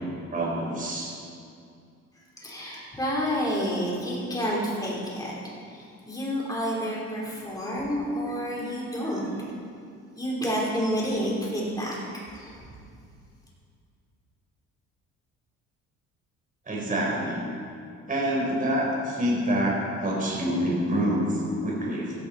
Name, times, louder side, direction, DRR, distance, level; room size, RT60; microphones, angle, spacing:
voice 1, 0.3-1.1 16.7-17.4 18.1-22.1, equal, 30° right, -3 dB, 4.2 m, -26 dB
voice 2, 2.4-5.3 5.7-9.3 10.2-12.0 12.3-12.7, equal, 15° left, -4 dB, 4.0 m, -29 dB
16.5 x 12.0 x 4.3 m, 2.4 s
cardioid pair, 125°, 29 cm